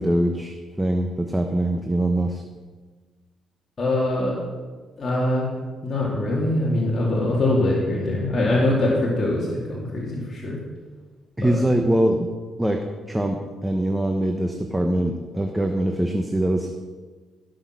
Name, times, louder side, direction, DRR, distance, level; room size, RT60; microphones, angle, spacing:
voice 1, 0.0-2.4 11.4-12.3 12.6-16.7, right 1 dB, 10° right, 3 dB, 1.1 m, -23 dB
voice 2, 3.8-4.4 5.0-5.5 5.8-10.6 11.4-11.6, left 1 dB, 35° left, -5 dB, 2.8 m, -23 dB
16.0 x 6.5 x 6.2 m, 1.4 s
cardioid pair, 90°, 0 cm